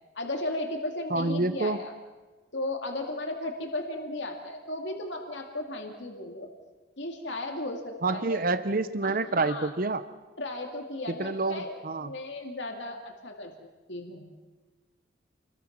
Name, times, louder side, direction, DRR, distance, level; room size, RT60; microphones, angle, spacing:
voice 1, 0.2-1.9 2.5-6.5 7.0-8.4 9.0-9.7 10.4-13.5 13.9-14.5, left 2 dB, 70° left, 3 dB, 2.5 m, -35 dB
voice 2, 1.1-1.8 8.0-10.1 11.2-12.1, right 3 dB, 45° right, 12 dB, 0.7 m, -28 dB
29.0 x 21.5 x 6.1 m, 1.3 s
head